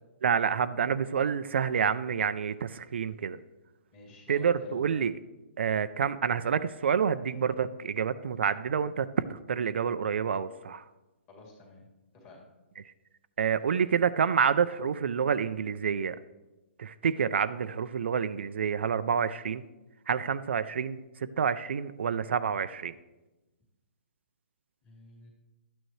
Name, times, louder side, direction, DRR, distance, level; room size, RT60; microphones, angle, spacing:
voice 1, 0.2-3.4 4.3-5.2 5.6-10.8 13.4-16.2 16.8-19.6 20.1-21.0 21.4-22.9, right 7 dB, 60° right, 12 dB, 0.4 m, -28 dB
voice 2, 3.9-5.1 11.3-11.8 12.1-12.4 24.8-25.3, left 2 dB, 20° left, -3 dB, 2.2 m, -51 dB
12.5 x 9.1 x 3.2 m, 1.1 s
hypercardioid pair, 170°, 7 cm